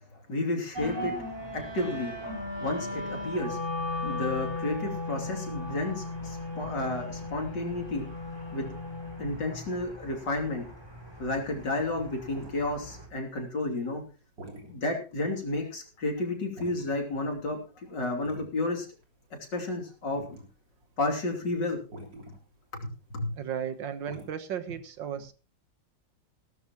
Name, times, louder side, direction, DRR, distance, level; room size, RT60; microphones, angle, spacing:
voice 1, 0.3-1.1 1.5-2.3 2.6-3.6 4.0-8.1 8.5-8.7 9.2-10.7 11.2-14.0 14.7-18.9 19.5-20.4 21.0-21.8 22.8-23.3, left 2 dB, 75° left, 1 dB, 3.6 m, -31 dB
sound 1, 0.7-13.1, left 2 dB, 15° right, 5.0 m, -37 dB
sound 2, 11.6-15.7 16.0-16.1 16.5-17.1 17.5-17.8 18.1-23.4 23.6-24.2, right 1 dB, 70° right, 3.8 m, -47 dB
voice 2, 23.4-25.3, right 8 dB, 90° right, 10 dB, 2.0 m, -35 dB
16.5 x 13.0 x 3.0 m, 0.35 s
omnidirectional pair, 2.0 m